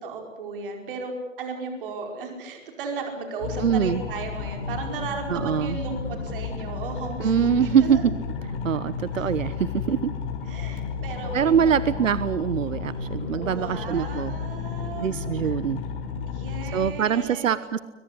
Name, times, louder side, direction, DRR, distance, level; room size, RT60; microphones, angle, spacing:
voice 1, 0.0-8.0 9.1-9.4 10.5-12.1 13.3-15.5 16.3-17.5, right 4 dB, 45° right, 4 dB, 5.1 m, -35 dB
sound 1, 3.4-16.9, left 5 dB, 45° left, 5.3 m, -32 dB
voice 2, 3.6-4.0 5.3-5.8 7.2-8.1 8.6-10.1 11.3-14.4 15.0-15.8 16.7-17.8, right 8 dB, 80° right, 16 dB, 1.0 m, -23 dB
23.0 x 21.0 x 8.3 m, 1.2 s
hypercardioid pair, 145°, 38 cm